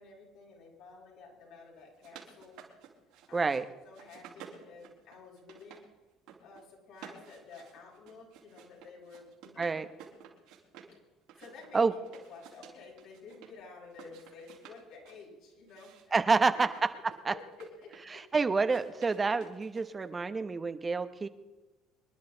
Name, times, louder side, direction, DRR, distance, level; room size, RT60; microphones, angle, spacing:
voice 1, 0.0-2.6 3.3-3.5 3.8-5.8 6.4-9.8 11.4-16.2 16.5-16.7 17.3-17.9, left 4 dB, 70° left, -3 dB, 6.8 m, -51 dB
sound 1, 1.8-3.6 3.9-5.8 6.1-6.6 6.9-10.9 11.3-13.5 13.9-15.2 15.7-18.2 18.6-20.1, right 7 dB, 75° right, 3.9 m, -54 dB
voice 2, 3.3-3.7 9.6-9.9 11.7-11.9 16.1-16.7 17.0-17.3 18.1-21.3, right 4 dB, 30° right, 9 dB, 1.1 m, -28 dB
26.0 x 11.0 x 4.0 m, 1.1 s
hypercardioid pair, 70°, 0 cm